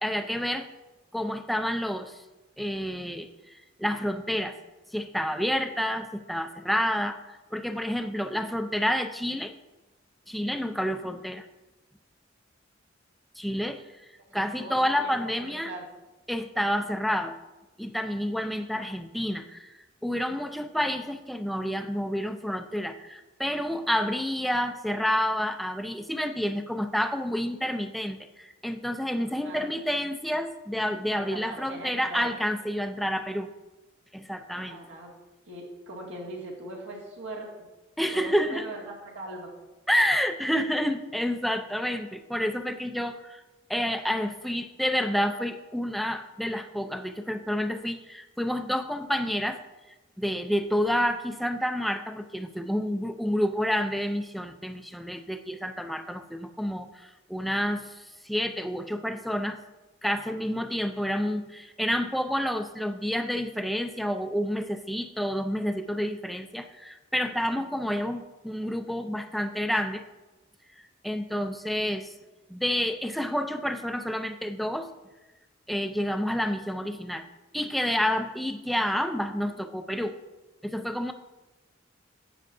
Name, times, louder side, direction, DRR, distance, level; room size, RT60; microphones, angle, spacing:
voice 1, 0.0-0.7 1.1-2.2 2.6-4.6 4.9-9.5 10.3-11.4 13.4-14.1 14.3-15.7 16.3-17.4 17.8-19.7 20.0-33.5 34.1-34.8 38.0-38.7 39.9-43.4 43.7-49.6 50.2-59.6 60.0-70.0 71.0-72.1 72.5-74.9 75.7-77.2 77.5-80.2 80.6-81.1, equal, ahead, 7 dB, 0.4 m, -29 dB
voice 2, 14.3-15.8 29.4-29.7 31.1-32.3 34.5-35.1 35.5-37.5 38.1-39.5, right 2 dB, 70° right, -3 dB, 2.1 m, -41 dB
12.0 x 8.4 x 2.6 m, 1.1 s
head